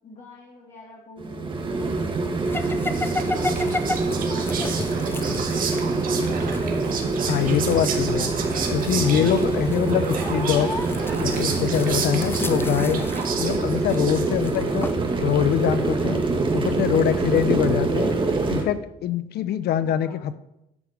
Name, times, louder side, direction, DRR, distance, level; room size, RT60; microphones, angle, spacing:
voice 1, 0.0-6.4 7.9-8.8 19.8-20.3, left 2 dB, 40° left, -5 dB, 3.2 m, -44 dB
sound 1, 1.2-18.6, right 3 dB, 30° right, 1.7 m, -25 dB
sound 2, 2.5-14.9, left 2 dB, 15° left, 0.7 m, -34 dB
Whispering, 2.6-14.6, right 6 dB, 55° right, 2.0 m, -33 dB
voice 2, 7.2-8.4 8.7-10.8 11.2-13.0 13.4-14.9 15.2-16.2 16.5-18.2 18.5-20.4, left 10 dB, 70° left, 14 dB, 0.7 m, -24 dB
12.0 x 5.1 x 6.5 m, 0.86 s
cardioid pair, 110°, 17 cm